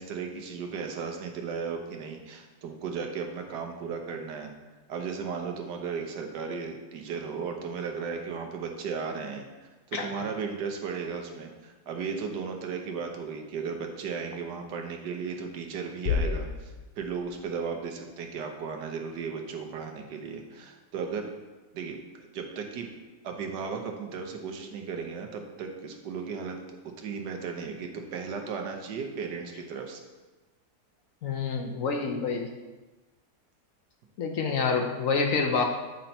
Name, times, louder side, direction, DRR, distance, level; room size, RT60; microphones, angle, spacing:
voice 1, 0.0-4.5 4.9-9.4 9.9-16.7 17.0-21.3 21.7-22.0 22.3-22.9 23.2-26.6 27.0-30.0, right 5 dB, 85° right, 3 dB, 1.5 m, -35 dB
Bass drum, 16.0-17.7, left 6 dB, 75° left, 0.6 m, -31 dB
voice 2, 31.2-32.5 34.2-35.6, left 5 dB, 60° left, 3 dB, 1.0 m, -27 dB
9.1 x 4.3 x 4.2 m, 1.2 s
omnidirectional pair, 1.8 m